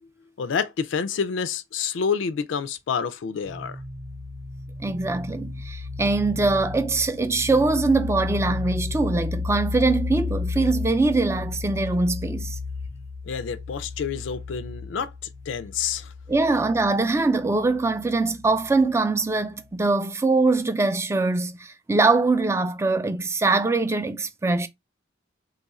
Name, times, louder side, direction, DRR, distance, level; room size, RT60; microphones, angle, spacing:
voice 1, 0.4-3.8 13.3-15.1 15.5-16.1, left 6 dB, 80° left, 0.4 m, -28 dB
sound 1, 3.4-18.9, left 4 dB, 70° right, 0.8 m, -33 dB
voice 2, 4.8-12.6 16.3-24.7, right 3 dB, 15° right, 0.3 m, -23 dB
3.0 x 2.4 x 4.0 m
head